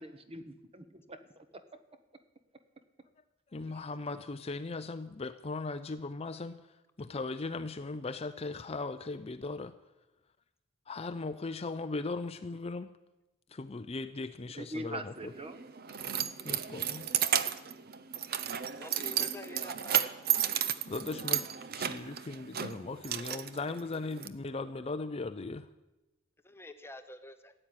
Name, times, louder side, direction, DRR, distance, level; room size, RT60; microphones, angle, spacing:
voice 1, 0.0-1.4 3.7-3.8 14.6-15.6, right 1 dB, 25° right, 10 dB, 1.1 m, -43 dB
voice 2, 3.5-6.6 7.0-9.7 10.9-12.9 13.5-15.3 16.4-17.1 20.9-25.7, left 3 dB, 25° left, 10 dB, 0.5 m, -38 dB
Keys jangling, 15.2-24.3, right 10 dB, 45° right, 0.7 m, -33 dB
voice 3, 18.8-20.1 26.4-27.5, left 1 dB, 10° left, 9 dB, 0.9 m, -48 dB
15.0 x 8.9 x 9.8 m, 1.0 s
head